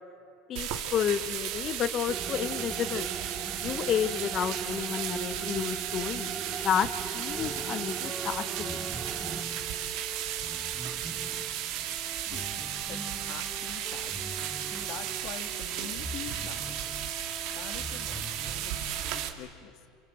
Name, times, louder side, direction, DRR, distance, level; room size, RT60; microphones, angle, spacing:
voice 1, 0.5-3.1 3.5-6.3 6.6-8.9, left 9 dB, 40° left, 13 dB, 0.9 m, -31 dB
sound 1, 0.6-19.3, right 11 dB, 65° right, 2.3 m, -35 dB
sound 2, 2.1-9.4, right 4 dB, 20° right, 1.8 m, -39 dB
sound 3, 7.4-19.3, right 1 dB, 5° right, 1.6 m, -43 dB
voice 2, 12.9-14.2 14.6-16.8 17.5-19.9, left 9 dB, 60° left, 7 dB, 2.4 m, -45 dB
29.0 x 24.5 x 7.8 m, 2.5 s
supercardioid pair, 105°, 0 cm